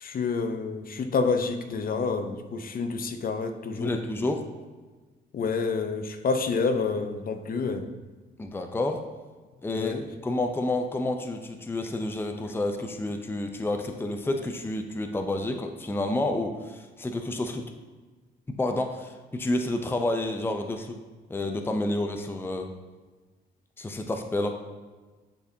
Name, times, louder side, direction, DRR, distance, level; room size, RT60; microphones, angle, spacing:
voice 1, 0.0-3.9 5.3-7.9 9.7-10.0, left 4 dB, 45° left, 8 dB, 0.7 m, -28 dB
voice 2, 3.8-4.4 8.4-9.0 9.6-9.9 10.2-17.7 18.6-21.0 21.3-22.7 23.8-24.6, left 2 dB, 10° left, 5 dB, 0.6 m, -29 dB
9.9 x 4.1 x 2.8 m, 1.3 s
cardioid pair, 90°, 20 cm